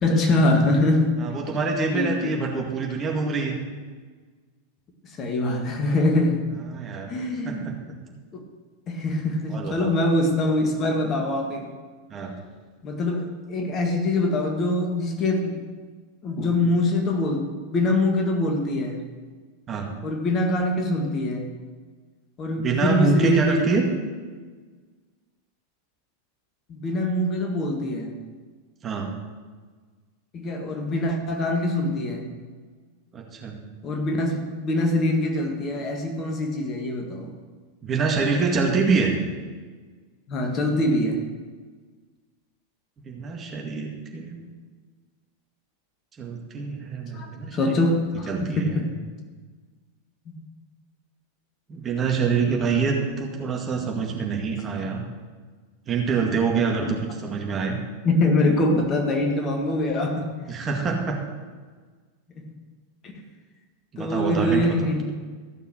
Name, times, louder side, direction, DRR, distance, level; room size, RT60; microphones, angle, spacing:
voice 1, 0.0-1.2 1.5-1.6 1.9-2.3 5.2-6.4 7.1-7.7 8.3-8.4 8.9-11.7 12.8-15.6 16.2-19.0 20.0-21.5 22.4-23.6 26.7-28.1 30.3-32.3 33.8-37.3 40.3-41.2 47.1-48.9 50.3-50.4 54.8-54.9 58.0-60.3 62.4-62.5 64.0-65.1, left 1 dB, 30° left, 3 dB, 1.8 m, -24 dB
voice 2, 1.2-3.6 6.7-7.1 7.4-7.7 9.5-9.9 12.1-12.3 19.7-19.9 22.5-23.9 28.8-29.1 33.1-33.6 37.8-39.1 43.0-44.5 46.2-47.7 48.3-48.9 51.7-55.0 55.9-57.8 60.5-61.2 63.9-64.9, right 4 dB, 25° right, 0 dB, 2.1 m, -26 dB
14.5 x 6.7 x 6.4 m, 1.4 s
figure-of-eight pair, 90°, 0 cm